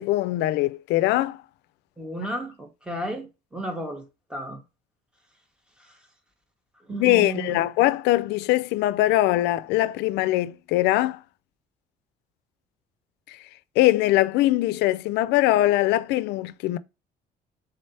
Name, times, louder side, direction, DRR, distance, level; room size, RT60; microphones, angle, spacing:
voice 1, 0.0-1.4 6.9-11.2 13.3-13.4 13.8-16.8, left 16 dB, 85° left, 0.4 m, -22 dB
voice 2, 2.0-3.3 3.5-4.0 4.3-4.6 6.9-7.7, right 1 dB, 5° right, 1.3 m, -33 dB
4.0 x 3.2 x 4.1 m
cardioid pair, 110°, 17 cm